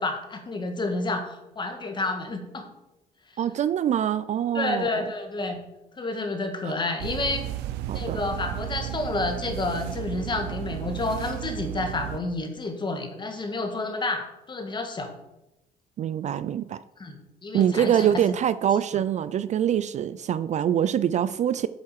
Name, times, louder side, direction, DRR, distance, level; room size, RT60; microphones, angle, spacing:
voice 1, 0.0-2.7 4.5-5.6 6.0-7.5 7.9-15.1 17.0-18.4, left 2 dB, 25° left, 5 dB, 1.6 m, -30 dB
voice 2, 3.4-5.0 6.7-6.8 7.9-8.2 16.0-16.8 17.5-21.7, right 9 dB, 45° right, 15 dB, 0.4 m, -24 dB
sound 1, 7.0-12.2, right 13 dB, 90° right, 0.6 m, -33 dB
7.5 x 7.2 x 4.8 m, 0.94 s
cardioid pair, 110°, 17 cm